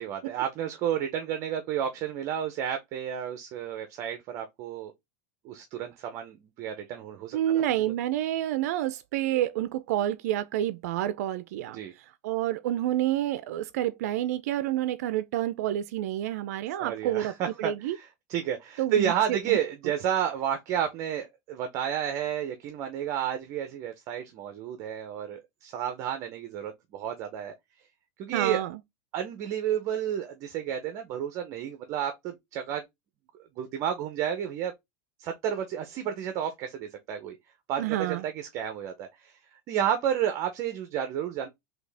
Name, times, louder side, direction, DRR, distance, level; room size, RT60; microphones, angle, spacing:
voice 1, 0.0-4.9 5.4-7.4 11.7-11.9 16.8-27.5 28.2-28.6 29.1-32.8 33.6-34.7 35.2-37.4 37.7-39.3 39.7-41.5, right 9 dB, 40° right, 0.7 m, -31 dB
voice 2, 7.3-11.8 12.2-18.0 18.8-19.6 28.3-28.8 37.8-38.2, right 13 dB, 75° right, 0.4 m, -29 dB
4.1 x 2.8 x 3.3 m
supercardioid pair, 160°, 9 cm